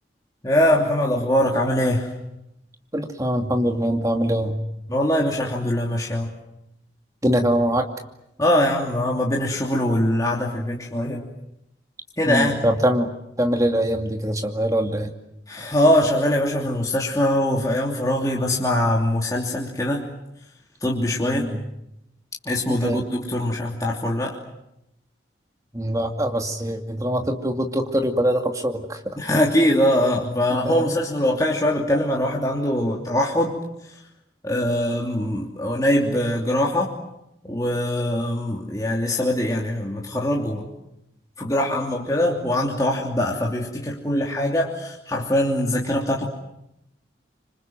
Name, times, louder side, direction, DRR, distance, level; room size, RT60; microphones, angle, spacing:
voice 1, 0.4-2.1 4.9-6.3 8.4-11.3 12.2-12.6 15.5-20.1 20.8-21.5 22.4-24.4 29.2-33.6 34.4-36.9 37.4-40.6 41.4-46.3, left 1 dB, 20° left, -2 dB, 2.9 m, -22 dB
voice 2, 2.9-4.6 7.2-7.8 12.3-13.1 13.4-15.1 21.2-21.6 22.7-23.0 25.7-29.0 30.6-30.7, equal, 20° right, 4 dB, 2.5 m, -23 dB
27.0 x 26.0 x 7.7 m, 0.84 s
head